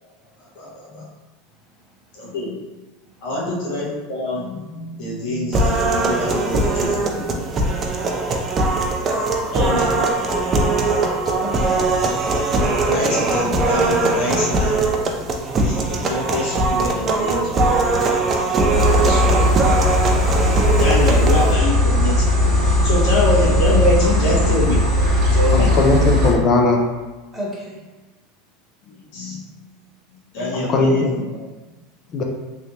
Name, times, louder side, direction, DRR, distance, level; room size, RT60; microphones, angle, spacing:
voice 1, 0.4-1.1 2.1-2.5 3.2-7.7 9.5-10.0 12.8-15.3 15.6-18.0 18.7-24.8 25.3-25.7 28.8-29.4 30.3-31.2 32.0-32.1, left 1 dB, 60° left, -7 dB, 1.2 m, -25 dB
voice 2, 1.7-2.2 3.1-3.3 11.2-12.0 24.0-24.1 25.5-25.7 27.3-27.8, equal, ahead, -7 dB, 1.0 m, -34 dB
sound 1, 5.5-21.5, right 2 dB, 30° right, 0.4 m, -20 dB
sound 2, 18.7-26.3, left 2 dB, 45° right, 0.8 m, -17 dB
voice 3, 25.5-26.8 30.5-31.1 32.1-32.2, left 3 dB, 35° left, 1 dB, 0.4 m, -18 dB
3.1 x 2.9 x 2.7 m, 1.2 s
supercardioid pair, 140°, 0 cm